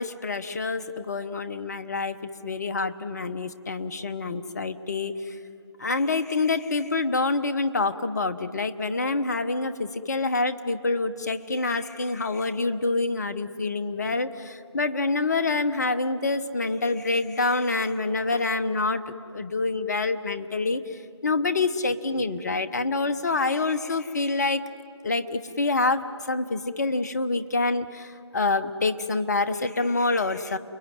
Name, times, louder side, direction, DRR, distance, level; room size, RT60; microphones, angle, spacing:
voice 1, 0.0-2.2 2.4-5.2 5.8-19.0 19.3-20.8 21.2-24.6 25.0-30.6, left 3 dB, 40° left, 11 dB, 1.1 m, -26 dB
29.5 x 21.0 x 9.3 m, 2.4 s
figure-of-eight pair, 155°, 15 cm